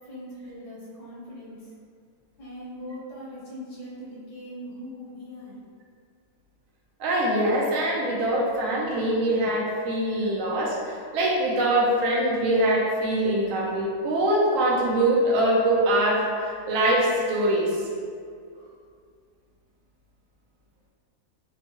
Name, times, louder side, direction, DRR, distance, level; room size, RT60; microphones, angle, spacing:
voice 1, 0.1-1.6 2.4-5.5, equal, 80° left, -7 dB, 1.6 m, -40 dB
voice 2, 7.0-17.8, right 1 dB, 60° right, -4 dB, 1.0 m, -23 dB
4.5 x 2.2 x 2.9 m, 2.2 s
omnidirectional pair, 1.7 m